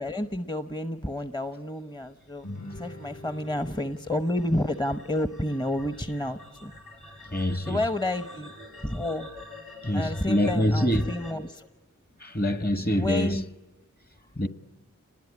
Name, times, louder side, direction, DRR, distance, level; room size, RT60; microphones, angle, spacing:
voice 1, 0.0-2.5 2.7-6.7 7.7-8.5 8.8-9.3 9.9-11.7 13.0-13.4, left 1 dB, 15° left, 0.9 m, -30 dB
sound 1, 2.0-11.3, left 1 dB, 90° left, 7.8 m, -47 dB
Guitar, 2.4-7.5, left 1 dB, 60° left, 7.4 m, -46 dB
voice 2, 7.3-7.8 9.8-11.1 12.2-13.4 14.4-14.5, equal, 30° left, 1.4 m, -25 dB
28.5 x 20.5 x 9.9 m
wide cardioid pair, 45°, 32 cm